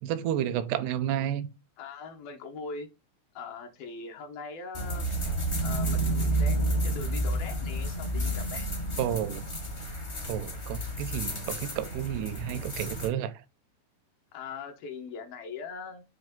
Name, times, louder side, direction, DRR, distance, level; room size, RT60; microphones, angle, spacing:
voice 1, 0.0-1.5 9.0-9.4 10.3-13.4, right 10 dB, 85° right, 2.7 m, -31 dB
voice 2, 1.8-2.9 3.3-5.1 5.6-8.7 14.3-16.0, left 4 dB, 70° left, 2.7 m, -41 dB
sound 1, 4.7-13.1, right 1 dB, 35° left, 0.9 m, -30 dB
8.2 x 3.3 x 5.2 m
omnidirectional pair, 4.8 m